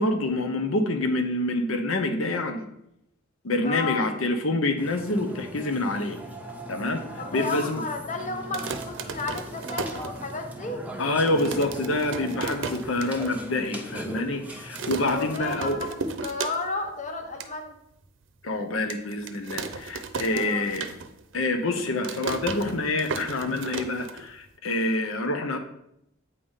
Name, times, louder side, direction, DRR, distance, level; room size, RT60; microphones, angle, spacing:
voice 1, 0.0-2.6 3.4-6.2 6.7-7.8 11.0-15.8 18.4-20.9 21.3-25.6, left 2 dB, 85° left, 6 dB, 0.8 m, -27 dB
voice 2, 3.6-4.1 7.2-10.8 15.1-16.0 16.2-17.7 20.3-20.6 24.7-24.8, left 3 dB, 40° left, 5 dB, 0.9 m, -33 dB
Burping eructation, 4.8-15.4, right 1 dB, 10° right, 0.7 m, -40 dB
sound 1, 8.4-10.7 11.0-11.1 11.3-13.3 13.7-13.8 14.0-14.4 14.7-16.9 17.2-17.5 18.0-18.1 18.9-21.3 21.6-24.6, right 4 dB, 65° right, 0.6 m, -35 dB
8.4 x 3.5 x 5.5 m, 0.80 s
head